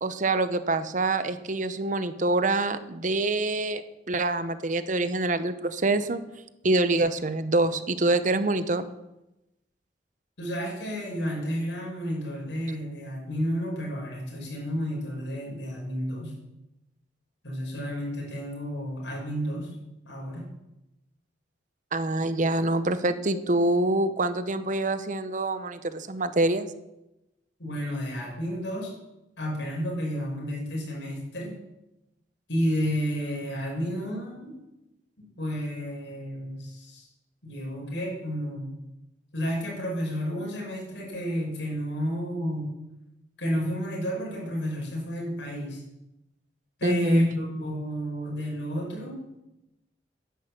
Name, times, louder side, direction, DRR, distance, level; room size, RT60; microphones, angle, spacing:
voice 1, 0.0-6.2 6.6-8.9 21.9-26.7 46.8-47.3, right 2 dB, 45° right, 12 dB, 0.8 m, -25 dB
voice 2, 10.4-16.3 17.4-19.7 20.0-20.5 27.6-28.9 29.4-31.5 32.5-34.5 35.4-37.1 37.4-38.7 39.3-42.7 43.4-45.8 46.8-49.2, equal, 85° left, -3 dB, 6.1 m, -31 dB
10.5 x 10.5 x 7.8 m, 0.94 s
head